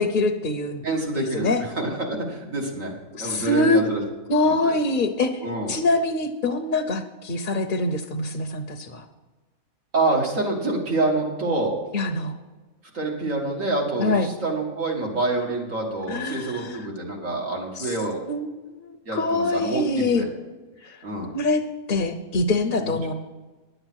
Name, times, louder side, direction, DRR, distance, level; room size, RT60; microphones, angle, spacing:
voice 1, 0.0-0.8 1.2-1.6 3.1-3.8 4.3-5.3 5.7-9.0 11.9-12.4 14.0-14.3 16.1-16.9 17.8-17.9 18.3-18.5 18.8-20.3 20.8-21.0 21.3-21.6 21.9-23.1, left 2 dB, 45° left, 4 dB, 0.8 m, -24 dB
voice 2, 0.8-2.9 3.2-4.0 4.4-4.8 5.4-5.7 9.9-11.7 12.9-18.2 19.1-20.3 21.0-21.3 22.8-23.0, right 2 dB, 70° right, -1 dB, 2.5 m, -27 dB
11.0 x 7.9 x 6.3 m, 1.2 s
omnidirectional pair, 1.4 m